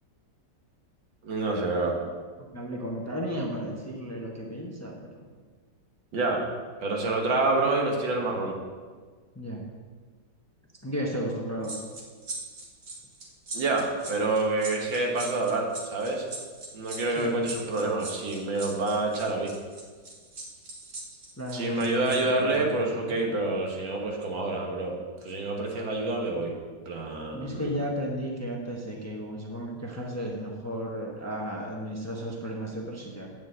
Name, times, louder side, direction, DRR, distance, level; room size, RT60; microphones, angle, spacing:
voice 1, 1.2-2.0 6.1-6.4 6.8-8.5 13.5-16.3 16.7-19.5 21.5-25.0 25.2-26.5 26.9-27.7, right 2 dB, 85° right, 0 dB, 2.2 m, -27 dB
voice 2, 2.4-5.0 9.3-9.6 10.8-11.8 17.2-17.4 21.4-23.2 27.3-33.3, equal, 10° left, -1 dB, 0.9 m, -34 dB
sound 1, 11.6-22.2 22.5-22.7, right 3 dB, 45° right, 1.9 m, -40 dB
9.3 x 5.2 x 7.8 m, 1.5 s
omnidirectional pair, 2.0 m